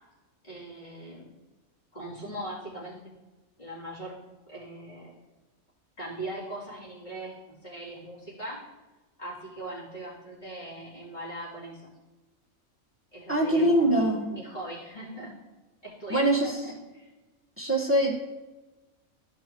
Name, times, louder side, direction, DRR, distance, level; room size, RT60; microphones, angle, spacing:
voice 1, 0.4-1.3 1.9-3.0 3.6-4.2 4.5-5.1 6.0-8.7 9.2-11.9 13.1-15.4 15.8-17.1, right 1 dB, 30° left, -8 dB, 3.3 m, -40 dB
voice 2, 13.3-14.4 16.1-16.5 17.6-18.1, right 1 dB, 10° right, -1 dB, 1.3 m, -23 dB
14.0 x 5.3 x 3.0 m, 1.2 s
omnidirectional pair, 1.5 m